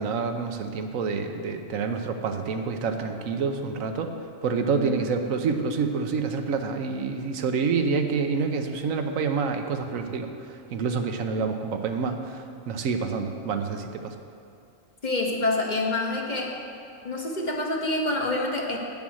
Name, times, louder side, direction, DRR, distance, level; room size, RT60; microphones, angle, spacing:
voice 1, 0.0-4.1 4.4-14.1, right 5 dB, 85° right, 6 dB, 1.1 m, -28 dB
voice 2, 4.7-5.0 15.0-16.6 17.0-18.8, left 2 dB, 40° left, 1 dB, 0.9 m, -27 dB
8.8 x 7.1 x 6.3 m, 2.4 s
omnidirectional pair, 1.4 m